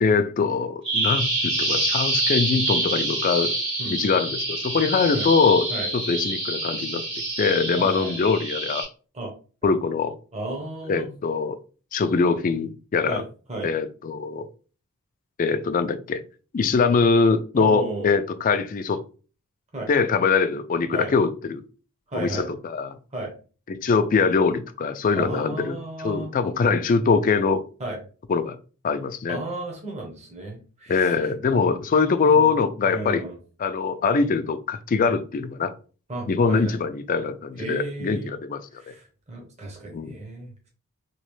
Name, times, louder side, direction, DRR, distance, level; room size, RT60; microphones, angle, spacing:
voice 1, 0.0-3.5 3.9-5.7 5.9-7.0 7.4-8.8 9.6-10.1 10.9-11.6 11.9-13.2 13.6-14.5 15.4-16.2 16.5-19.0 19.9-21.6 22.1-23.0 23.7-27.6 28.3-28.6 28.8-29.4 30.9-33.2 33.6-35.7 36.3-38.8 39.9-40.1, left 5 dB, 35° left, 9 dB, 0.3 m, -23 dB
Bird vocalization bird call bird song, 0.8-8.8, right 2 dB, 55° right, 1.8 m, -26 dB
voice 2, 7.8-8.1 9.1-9.3 10.3-11.1 13.1-13.7 17.5-18.1 19.7-19.9 20.9-21.1 22.1-22.5 23.1-23.3 25.2-26.3 27.8-28.0 29.3-31.3 32.0-33.4 36.1-36.7 37.6-38.3 38.7-40.7, right 2 dB, 30° right, 0 dB, 0.9 m, -34 dB
3.1 x 2.8 x 3.1 m, 0.37 s
head